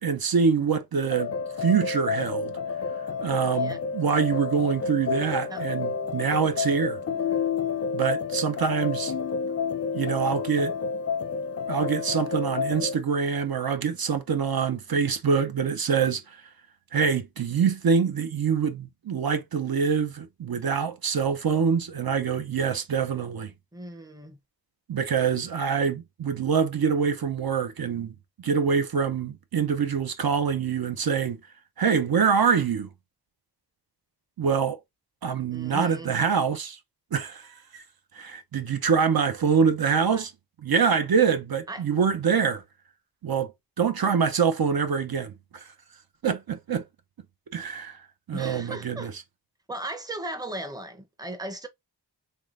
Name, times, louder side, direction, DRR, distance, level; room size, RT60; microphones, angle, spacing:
voice 1, 0.0-1.3 1.6-2.6 3.2-7.0 7.9-9.1 9.9-10.7 11.7-16.4 16.9-23.5 24.9-31.4 31.8-32.9 34.4-34.8 35.2-36.8 37.1-37.8 38.1-40.3 40.6-42.6 43.2-43.5 43.8-45.7 46.2-46.8 47.5-48.0 48.3-49.1, right 6 dB, 60° right, 0.6 m, -25 dB
sound 1, 1.1-13.0, left 5 dB, 40° left, 0.5 m, -30 dB
voice 2, 23.7-24.4 35.5-36.1 39.9-40.2 41.7-41.9 48.3-49.1 49.7-51.7, right 1 dB, 10° right, 0.7 m, -37 dB
3.6 x 3.2 x 2.4 m
wide cardioid pair, 75°, 41 cm